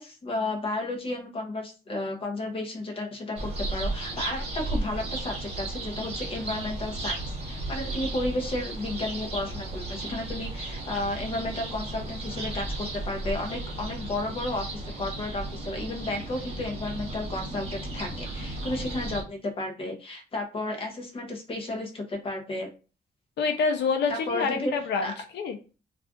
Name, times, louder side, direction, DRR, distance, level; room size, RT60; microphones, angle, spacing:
voice 1, 0.0-14.7 15.0-22.7 24.1-24.7 25.0-25.1, left 2 dB, 30° left, 3 dB, 0.7 m, -33 dB
sound 1, 3.4-19.2, right 2 dB, 35° right, 0.9 m, -34 dB
voice 2, 23.4-25.6, left 5 dB, 80° left, 5 dB, 0.5 m, -27 dB
2.4 x 2.3 x 3.6 m, 0.34 s
wide cardioid pair, 165°, 18 cm